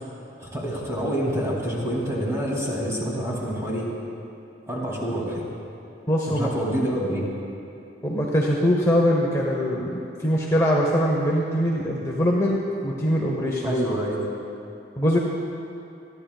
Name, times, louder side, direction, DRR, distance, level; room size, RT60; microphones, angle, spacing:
voice 1, 0.4-3.9 4.7-5.4 6.3-7.2 13.6-14.2, equal, 15° right, -5 dB, 2.6 m, -27 dB
voice 2, 6.1-6.5 8.0-13.7 15.0-15.2, equal, 15° left, -3 dB, 1.0 m, -22 dB
27.5 x 10.5 x 2.4 m, 2.6 s
head